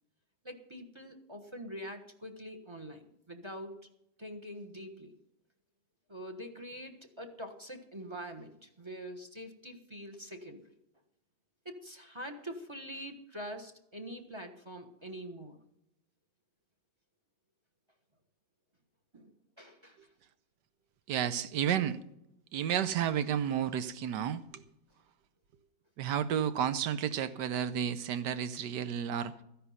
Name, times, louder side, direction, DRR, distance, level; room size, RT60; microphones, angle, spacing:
voice 1, 0.4-3.7 4.2-5.2 6.1-10.7 11.6-15.6 19.1-20.0, equal, 20° right, 6 dB, 1.1 m, -45 dB
voice 2, 21.1-22.0 22.5-24.6 26.0-29.3, right 9 dB, 75° right, 13 dB, 1.4 m, -31 dB
14.0 x 10.0 x 5.6 m, 0.83 s
omnidirectional pair, 1.9 m